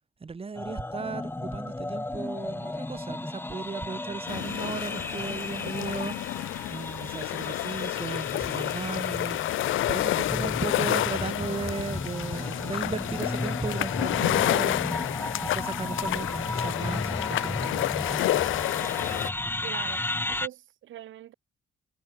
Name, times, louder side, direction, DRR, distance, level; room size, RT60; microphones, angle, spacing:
voice 1, 0.2-6.2 6.7-9.4 9.9-15.0 15.4-17.9, right 4 dB, 30° right, 2.2 m, -36 dB
sound 1, 0.6-20.5, left 2 dB, 10° left, 1.4 m, -34 dB
sound 2, 4.3-19.3, left 14 dB, 80° left, 1.2 m, -29 dB
voice 2, 19.6-21.3, right 12 dB, 75° right, 3.4 m, -42 dB
cardioid pair, 90°, 20 cm